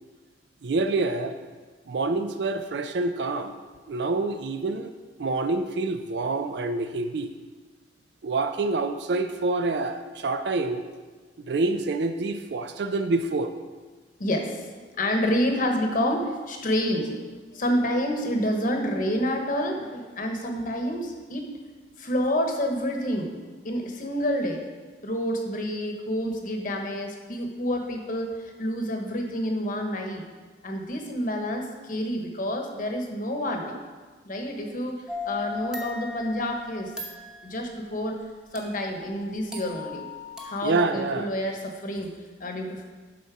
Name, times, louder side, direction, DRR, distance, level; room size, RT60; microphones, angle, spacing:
voice 1, 0.6-1.4 1.9-3.5 3.9-4.9 5.2-7.3 8.2-10.8 11.5-13.5 40.6-41.3, right 3 dB, 70° right, 8 dB, 0.5 m, -27 dB
voice 2, 14.2-21.5 22.0-23.3 23.6-24.6 25.0-30.2 30.6-33.8 34.2-35.0 35.2-36.9 37.4-38.2 38.5-40.0 40.4-42.1 42.4-42.8, equal, 50° left, 3 dB, 1.1 m, -28 dB
sound 1, 35.1-37.6 38.6-40.6, left 4 dB, 5° right, 1.0 m, -37 dB
11.5 x 4.1 x 4.9 m, 1.4 s
head